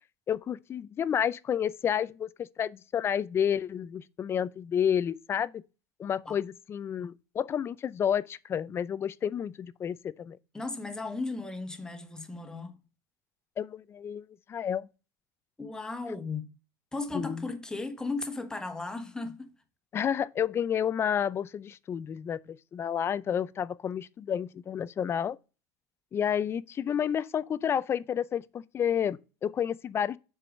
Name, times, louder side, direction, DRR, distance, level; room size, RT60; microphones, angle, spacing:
voice 1, 0.3-5.6 6.0-10.4 13.6-14.9 17.1-17.5 19.9-25.4 26.1-30.2, left 8 dB, 30° left, 0.4 m, -30 dB
voice 2, 10.5-12.8 15.6-16.5 16.9-19.5, left 3 dB, 10° left, 1.3 m, -36 dB
7.6 x 4.8 x 5.2 m
supercardioid pair, 135°, 9 cm